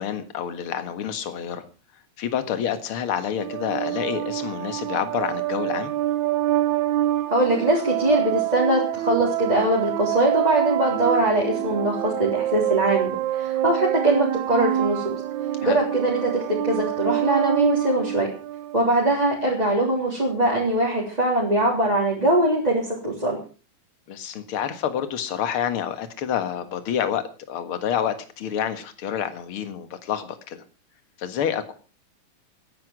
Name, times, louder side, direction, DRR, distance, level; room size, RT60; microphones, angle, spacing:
voice 1, 0.0-1.6 2.2-5.9 15.6-15.8 24.1-30.6 31.2-31.7, left 9 dB, 50° left, 9 dB, 2.2 m, -28 dB
sound 1, 3.4-18.8, right 13 dB, 75° right, 2.2 m, -26 dB
voice 2, 7.3-15.1 15.6-18.3 18.7-23.4, right 1 dB, 15° right, -4 dB, 3.8 m, -22 dB
16.0 x 10.5 x 6.2 m, 0.38 s
omnidirectional pair, 3.3 m